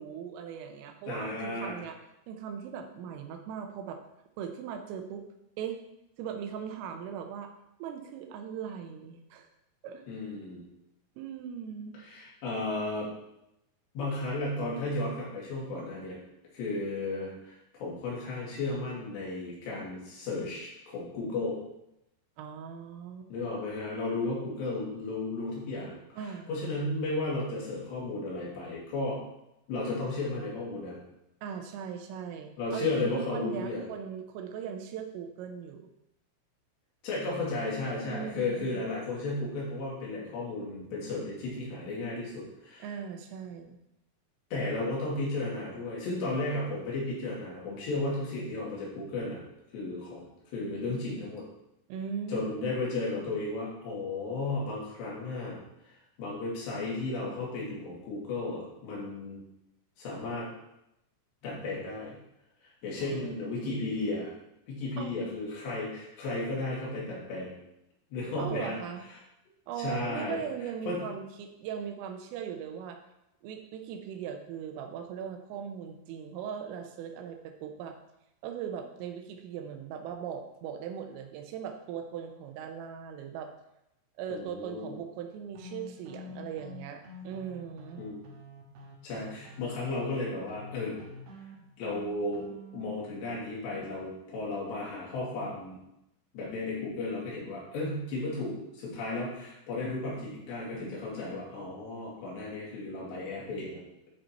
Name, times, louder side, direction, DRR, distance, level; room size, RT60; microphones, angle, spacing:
voice 1, 0.0-2.0 2.3-4.0 4.4-5.2 5.6-5.8 6.2-7.5 7.8-9.5 9.8-10.0 11.2-12.0 22.4-23.3 26.2-26.5 31.4-35.9 38.1-38.8 42.8-43.8 51.9-52.7 63.0-63.6 65.0-65.2 68.4-69.0 69.7-73.0 73.4-78.0 78.4-83.5 84.2-88.0, right 8 dB, 90° right, 5 dB, 3.4 m, -39 dB
voice 2, 1.1-1.7 10.1-10.6 12.0-13.1 13.9-16.2 16.5-21.6 23.3-26.2 26.5-29.2 29.7-31.0 32.6-33.8 37.0-42.9 44.5-49.4 49.7-50.2 50.5-51.5 52.3-55.6 56.2-59.4 60.0-60.5 61.4-62.2 62.8-64.3 64.7-67.5 68.1-68.7 69.8-70.4 70.9-71.0 84.3-85.0 88.0-88.2 89.0-91.0 91.8-92.5 92.7-95.8 96.3-103.8, left 2 dB, 60° left, -5 dB, 4.4 m, -34 dB
sound 1, 85.5-93.0, left 2 dB, 70° right, 2.7 m, -47 dB
9.4 x 5.3 x 4.4 m, 0.85 s
omnidirectional pair, 5.8 m